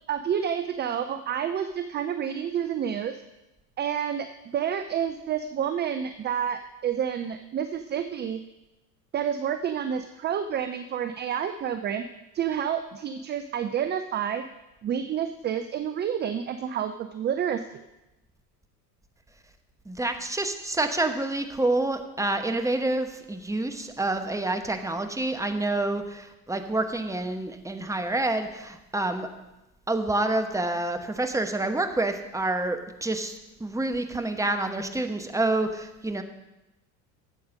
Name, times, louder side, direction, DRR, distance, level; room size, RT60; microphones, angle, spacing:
voice 1, 0.1-3.2 3.8-8.4 9.1-12.1 12.3-14.4 14.8-17.8, right 8 dB, 20° right, 10 dB, 0.5 m, -29 dB
voice 2, 19.8-29.3 29.9-36.2, right 2 dB, 5° right, 6 dB, 1.1 m, -28 dB
9.0 x 7.8 x 6.4 m, 0.97 s
hypercardioid pair, 75°, 49 cm